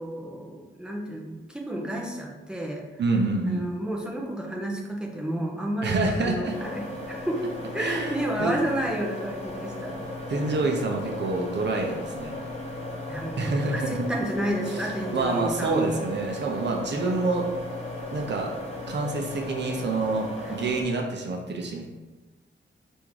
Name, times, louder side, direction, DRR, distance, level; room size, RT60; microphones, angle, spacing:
voice 1, 0.0-2.9 3.5-7.4 7.7-10.0 10.4-10.6 13.1-16.0 16.9-17.2 20.4-20.7, right 1 dB, 5° right, -1 dB, 0.6 m, -31 dB
voice 2, 3.0-3.7 5.8-6.6 7.8-8.5 10.3-12.4 13.4-14.0 14.7-14.9 15.1-17.5 18.1-18.5 18.9-21.9, right 3 dB, 60° right, 1 dB, 0.6 m, -27 dB
sound 1, 6.5-20.8, left 1 dB, 35° left, 1.0 m, -36 dB
3.5 x 2.6 x 4.6 m, 1.1 s
wide cardioid pair, 145°, 20 cm